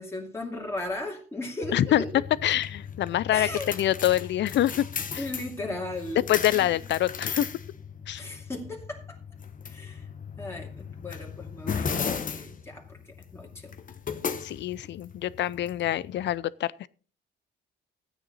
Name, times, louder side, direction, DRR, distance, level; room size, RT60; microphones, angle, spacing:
voice 1, 0.0-2.2 3.3-3.7 5.2-6.7 8.1-9.2 9.6-10.1 10.4-13.8, left 2 dB, 15° left, 2.5 m, -37 dB
Vending Machine, 1.6-16.3, left 6 dB, 45° left, 1.1 m, -37 dB
voice 2, 1.7-2.0 2.4-4.9 5.1-5.2 6.3-7.5 8.1-8.2 14.4-16.9, left 12 dB, 65° left, 0.5 m, -26 dB
13.0 x 9.0 x 4.1 m
cardioid pair, 90°, 20 cm